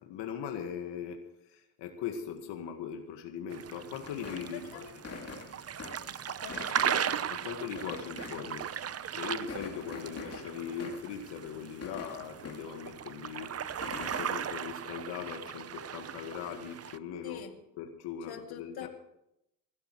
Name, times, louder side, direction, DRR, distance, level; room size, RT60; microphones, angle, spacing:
voice 1, 0.0-4.8 7.3-8.7 9.1-13.6 14.0-17.5 17.8-18.9, left 8 dB, 85° left, 3 dB, 2.0 m, -40 dB
sound 1, 3.5-17.0, right 9 dB, 35° right, 0.7 m, -37 dB
sound 2, 4.0-9.0 9.3-12.9 13.2-14.4, left 4 dB, 35° left, 2.7 m, -46 dB
voice 2, 4.5-5.0 5.2-5.3 6.3-7.1 17.2-17.5 18.3-18.9, left 9 dB, 60° left, 5 dB, 2.2 m, -44 dB
20.5 x 12.0 x 4.7 m, 0.83 s
cardioid pair, 90°, 41 cm